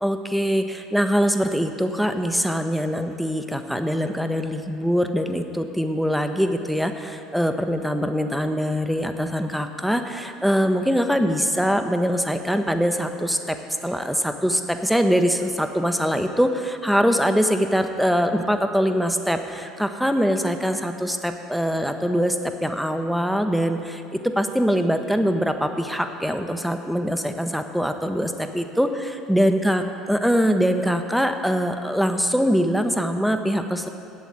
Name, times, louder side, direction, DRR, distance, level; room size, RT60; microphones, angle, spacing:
voice 1, 0.0-13.6 13.8-33.9, equal, ahead, 7 dB, 0.8 m, -23 dB
8.2 x 7.6 x 8.7 m, 2.6 s
figure-of-eight pair, 65°, 0 cm